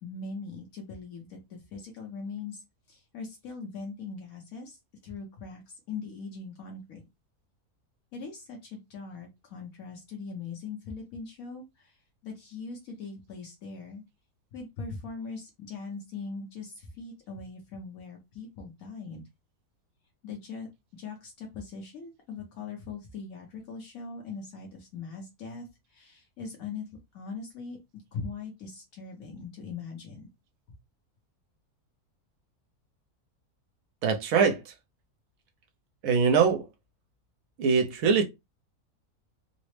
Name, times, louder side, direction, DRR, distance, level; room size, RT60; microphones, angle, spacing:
voice 1, 0.0-2.6 2.9-7.0 8.1-12.0 12.2-14.0 14.5-19.2 20.2-20.7 20.9-26.8 27.1-27.8 28.1-30.3, left 4 dB, 70° left, 1.2 m, -41 dB
voice 2, 34.0-34.7 36.0-36.7 37.6-38.2, right 6 dB, 70° right, 1.1 m, -23 dB
3.9 x 2.0 x 3.1 m
omnidirectional pair, 1.6 m